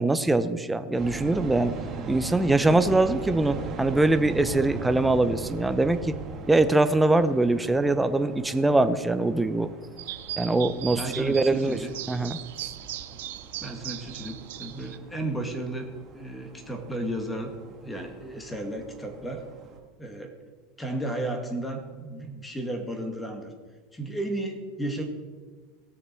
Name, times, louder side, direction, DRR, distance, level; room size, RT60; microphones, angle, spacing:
voice 1, 0.0-1.7 2.1-6.1 6.5-9.7 10.4-11.8 12.1-12.7, right 2 dB, 5° right, 11 dB, 0.7 m, -23 dB
sound 1, 1.0-19.8, right 4 dB, 30° right, 1.9 m, -40 dB
sound 2, 10.0-15.0, right 12 dB, 85° right, 0.7 m, -38 dB
voice 2, 10.9-12.0 13.6-15.9 16.1-19.4 20.0-20.4 20.8-23.5 23.9-25.0, right 1 dB, 10° left, 5 dB, 1.9 m, -33 dB
18.5 x 6.7 x 4.5 m, 1.4 s
supercardioid pair, 130°, 0 cm